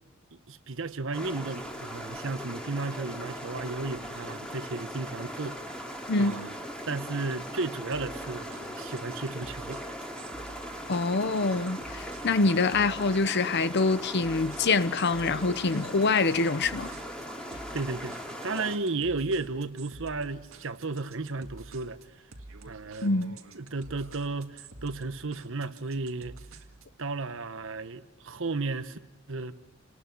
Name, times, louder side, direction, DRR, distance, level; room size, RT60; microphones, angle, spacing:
voice 1, 0.5-5.6 6.2-6.5 6.9-9.8 17.7-18.1 18.4-22.0 22.7-23.1 23.5-26.3 27.0-29.0 29.3-29.5, right 3 dB, 65° right, 1.2 m, -34 dB
sound 1, 1.1-18.8, equal, 5° left, 2.9 m, -39 dB
sound 2, 7.9-27.0, right 3 dB, 90° right, 1.9 m, -49 dB
voice 2, 10.9-16.9 23.0-23.4, left 3 dB, 55° left, 0.8 m, -25 dB
29.5 x 20.0 x 6.1 m
head